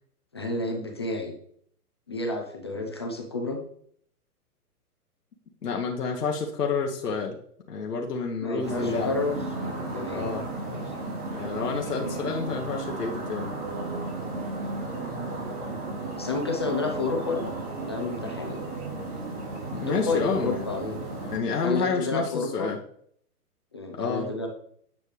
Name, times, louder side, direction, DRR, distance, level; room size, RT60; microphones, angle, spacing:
voice 1, 0.3-1.3 2.1-3.6 8.4-10.3 10.7-10.9 11.9-12.7 16.1-17.5 17.8-18.6 19.9-21.0 21.6-22.7 23.7-24.5, left 3 dB, 20° left, 2 dB, 0.4 m, -31 dB
voice 2, 5.6-7.4 7.7-9.1 10.1-10.5 11.3-13.5 19.7-20.6 21.2-22.8 23.9-24.3, left 4 dB, 80° left, 0 dB, 1.2 m, -29 dB
sound 1, 8.6-21.4, right 2 dB, 70° right, 3.4 m, -34 dB
9.0 x 5.4 x 3.2 m, 0.65 s
hypercardioid pair, 130°, 46 cm